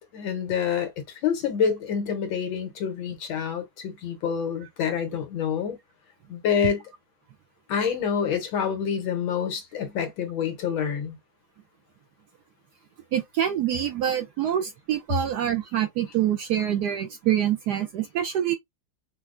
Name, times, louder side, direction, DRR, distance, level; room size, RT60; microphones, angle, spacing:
voice 1, 0.1-5.8 6.3-6.8 7.7-11.2, left 7 dB, 75° left, 1.7 m, -27 dB
voice 2, 13.1-18.5, right 10 dB, 70° right, 1.0 m, -26 dB
5.5 x 2.1 x 2.4 m
omnidirectional pair, 2.2 m